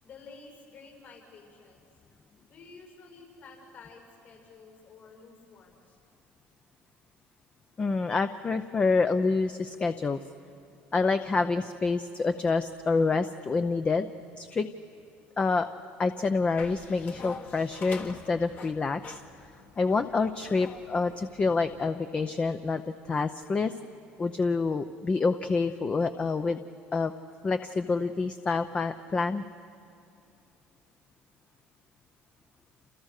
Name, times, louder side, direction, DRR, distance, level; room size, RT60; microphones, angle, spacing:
voice 1, 0.0-1.8 2.5-6.0, left 4 dB, 60° left, 1 dB, 7.0 m, -51 dB
voice 2, 7.8-10.2 10.9-14.1 14.4-14.7 15.4-15.7 16.0-19.2 19.8-22.8 23.1-23.7 24.2-26.6 26.9-27.1 27.4-29.4, left 4 dB, 25° left, 9 dB, 0.7 m, -27 dB
sound 1, 16.6-21.9, left 4 dB, 45° left, 1.7 m, -46 dB
29.0 x 29.0 x 6.6 m, 2.6 s
cardioid pair, 120°, 4 cm